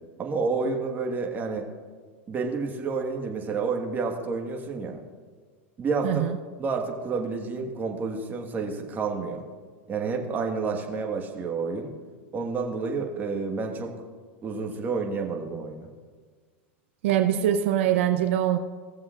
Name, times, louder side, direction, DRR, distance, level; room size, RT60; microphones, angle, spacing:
voice 1, 0.2-1.6 2.3-5.0 5.8-6.2 6.6-9.4 9.9-11.9 12.3-13.9 14.4-15.9, right 4 dB, 25° right, 2 dB, 1.5 m, -29 dB
voice 2, 6.0-6.4 17.0-18.6, right 11 dB, 70° right, 6 dB, 0.6 m, -23 dB
17.0 x 7.5 x 2.5 m, 1.5 s
hypercardioid pair, 110°, 7 cm